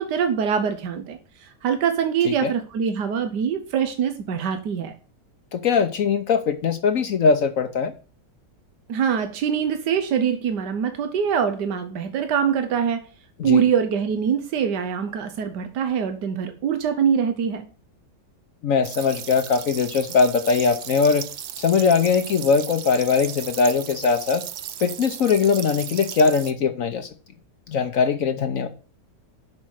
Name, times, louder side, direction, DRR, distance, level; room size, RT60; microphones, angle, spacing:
voice 1, 0.0-4.9 8.9-13.0 13.4-17.6, right 7 dB, 90° right, 7 dB, 1.5 m, -24 dB
voice 2, 5.5-7.9 13.4-13.6 18.6-21.2 21.6-24.4 24.8-27.1 27.7-28.7, left 5 dB, 60° left, 8 dB, 1.1 m, -21 dB
sound 1, 18.8-26.5, right 9 dB, 65° right, 0.6 m, -36 dB
7.5 x 5.5 x 6.3 m, 0.37 s
omnidirectional pair, 1.8 m